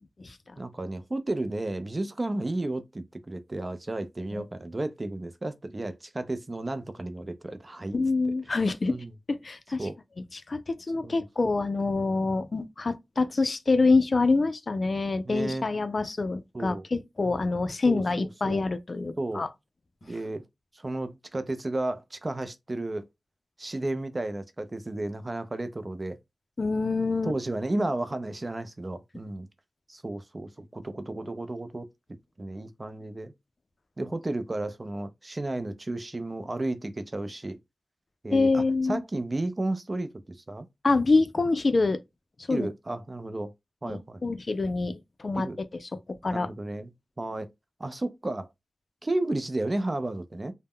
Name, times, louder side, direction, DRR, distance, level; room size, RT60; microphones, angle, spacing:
voice 1, 0.6-8.0 8.9-9.1 9.8-10.0 11.0-11.3 15.3-15.7 16.5-16.9 17.9-18.6 19.2-19.5 20.0-20.4 20.7-23.0 23.6-26.2 27.2-29.5 29.9-31.9 32.4-33.3 34.0-37.6 38.2-40.7 42.5-43.5 43.8-44.2 45.4-45.6 46.3-46.9 47.2-47.5 47.8-48.5 49.0-50.5, right 2 dB, 40° right, 0.4 m, -33 dB
voice 2, 7.9-9.0 9.3-9.9 10.3-19.5 26.6-27.3 38.3-39.0 40.8-42.0 42.5-42.7 43.9-45.5 45.9-46.5, left 3 dB, 55° left, 0.3 m, -26 dB
2.1 x 2.0 x 3.5 m
cardioid pair, 50°, 0 cm